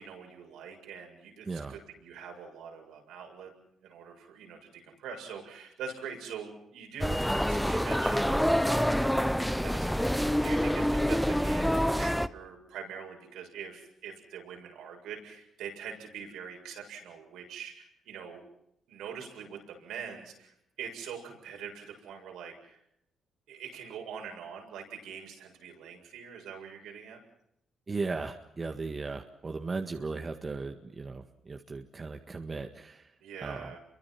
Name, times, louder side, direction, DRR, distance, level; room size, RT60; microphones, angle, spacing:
voice 1, 0.0-3.5 3.8-18.4 18.9-22.8 23.5-27.2 33.2-33.8, right 7 dB, 85° right, 2 dB, 7.2 m, -44 dB
voice 2, 1.5-1.8 27.9-33.1 33.4-33.7, right 4 dB, 30° right, 5 dB, 1.7 m, -37 dB
sound 1, 7.0-12.3, equal, ahead, 0.9 m, -27 dB
28.5 x 23.5 x 6.0 m, 0.78 s
cardioid pair, 90°, 0 cm